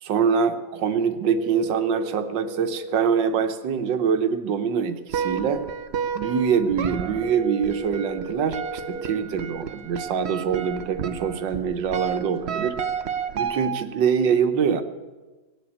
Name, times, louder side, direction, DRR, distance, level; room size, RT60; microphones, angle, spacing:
voice 1, 0.0-5.7 6.1-8.6 8.9-12.8 13.4-14.8, right 6 dB, 75° right, 8 dB, 1.7 m, -24 dB
sound 1, 1.2-3.2 7.2-9.2, right 1 dB, 45° left, 0.4 m, -36 dB
sound 2, 5.1-14.1, right 7 dB, 60° right, 0.6 m, -32 dB
19.0 x 7.8 x 8.7 m, 1.2 s
omnidirectional pair, 2.0 m